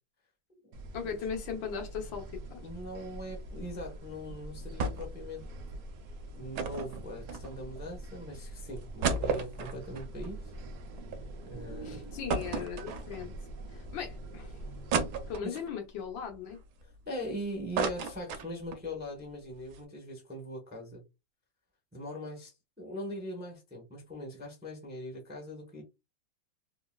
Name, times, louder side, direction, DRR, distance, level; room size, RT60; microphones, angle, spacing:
sound 1, 0.7-15.3, right 1 dB, 90° right, 0.6 m, -44 dB
voice 1, 0.9-2.6 11.8-13.3 13.7-14.6 15.3-16.6, left 7 dB, 80° left, 1.6 m, -38 dB
voice 2, 2.6-5.4 6.4-10.5 11.5-12.0 15.4-15.6 17.1-21.0 21.9-25.8, equal, 10° right, 0.6 m, -41 dB
sound 2, 4.8-5.2 5.5-5.6 6.5-7.8 8.3-8.4 8.8-11.2 11.6-11.7 12.3-13.4 13.9-14.0 14.9-15.7 16.3-17.3 17.5-18.9 19.2-19.3 19.6-19.8, right 4 dB, 70° right, 1.0 m, -33 dB
3.7 x 2.2 x 2.2 m
omnidirectional pair, 2.1 m